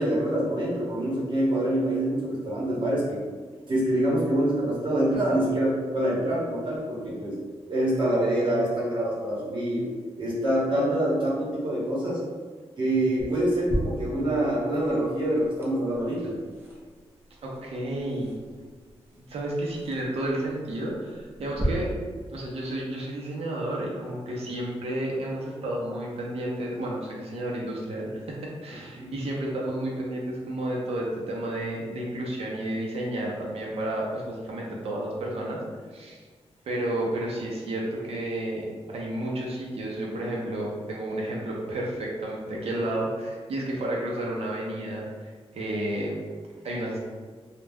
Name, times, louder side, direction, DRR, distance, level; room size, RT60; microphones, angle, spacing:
voice 1, 0.0-3.2 3.7-7.4 7.7-9.9 10.2-12.2 12.8-16.4 28.9-29.1, right 1 dB, 50° right, -7 dB, 1.0 m, -25 dB
sound 1, 13.2-21.6, equal, 20° right, 0.6 m, -40 dB
voice 2, 17.4-18.3 19.1-21.9 22.3-35.6 35.9-36.2 36.7-45.0 45.5-46.2 46.6-47.0, right 1 dB, 70° right, -3 dB, 0.7 m, -31 dB
2.3 x 2.1 x 3.5 m, 1.5 s
wide cardioid pair, 120°, 11 cm